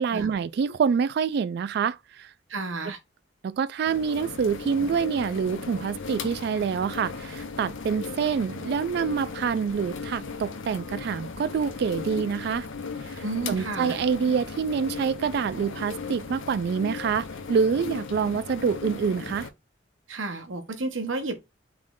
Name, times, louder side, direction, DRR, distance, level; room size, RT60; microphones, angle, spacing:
voice 1, 0.0-2.3 3.4-12.7 13.1-19.5, right 6 dB, 55° right, 0.3 m, -26 dB
voice 2, 2.5-3.0 13.2-14.0 20.1-21.4, right 3 dB, 85° right, 1.0 m, -31 dB
sound 1, 3.9-19.5, left 4 dB, 85° left, 0.7 m, -37 dB
3.6 x 3.1 x 3.7 m
head